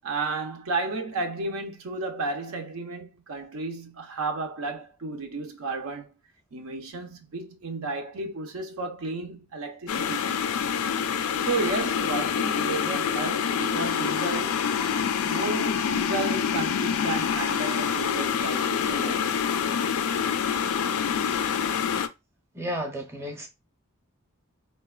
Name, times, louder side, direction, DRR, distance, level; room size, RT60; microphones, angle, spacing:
voice 1, 0.0-6.1 6.5-10.6 11.4-14.6 15.2-19.6, right 3 dB, 75° right, 0.6 m, -33 dB
sound 1, 9.9-22.1, left 7 dB, 75° left, 0.3 m, -26 dB
voice 2, 22.5-23.5, equal, 10° right, 0.6 m, -32 dB
3.9 x 2.2 x 2.3 m
head